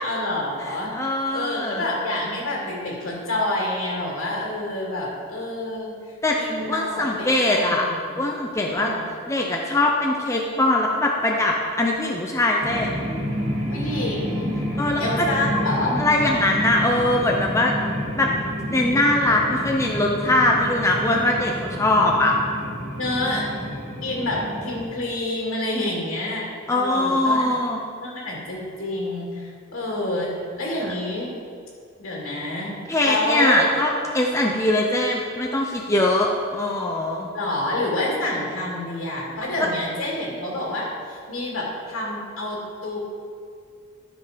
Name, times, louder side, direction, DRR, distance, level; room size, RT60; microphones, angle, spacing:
voice 1, 0.0-1.0 1.3-5.9 6.4-8.2 8.7-9.1 13.7-14.5 15.0-16.1 23.0-23.4 24.0-27.5 28.0-31.3 32.0-32.8 33.0-33.7 37.3-43.0, left 1 dB, 80° left, -4 dB, 2.3 m, -28 dB
voice 2, 0.6-1.8 6.2-7.9 8.2-8.9 9.3-12.9 14.8-15.3 16.0-17.7 18.2-18.3 18.7-22.4 26.7-27.8 32.9-37.3 39.6-39.7, left 1 dB, 15° left, -1 dB, 0.6 m, -21 dB
sound 1, 12.6-24.8, equal, 35° right, 2.0 m, -29 dB
12.5 x 5.8 x 5.0 m, 2.3 s
head